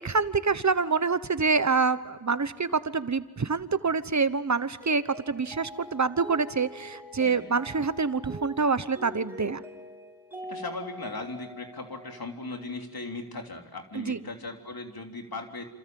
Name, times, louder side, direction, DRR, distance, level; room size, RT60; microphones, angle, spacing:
voice 1, 0.0-9.6 13.9-14.2, right 4 dB, 50° right, 13 dB, 1.1 m, -26 dB
Mallet percussion, 4.8-13.0, equal, 5° right, 6.4 m, -44 dB
voice 2, 7.2-7.5 10.5-15.6, left 3 dB, 70° left, 3 dB, 3.3 m, -38 dB
28.0 x 27.5 x 7.7 m, 1.1 s
wide cardioid pair, 65°, 37 cm